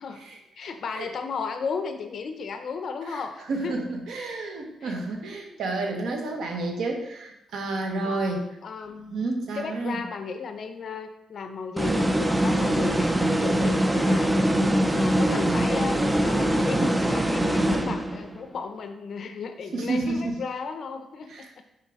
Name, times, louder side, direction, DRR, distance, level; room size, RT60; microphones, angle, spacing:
voice 1, 0.6-3.8 4.8-5.0 8.0-8.3 8.6-9.2 9.5-14.6 15.0-21.6, left 5 dB, 45° left, 7 dB, 0.5 m, -34 dB
voice 2, 3.5-8.5 9.1-10.0 19.7-20.4 21.3-21.6, right 2 dB, 65° right, 2 dB, 1.1 m, -30 dB
sound 1, 11.8-18.4, right 1 dB, 10° right, 0.3 m, -23 dB
6.6 x 3.7 x 4.7 m, 0.87 s
cardioid pair, 180°, 0 cm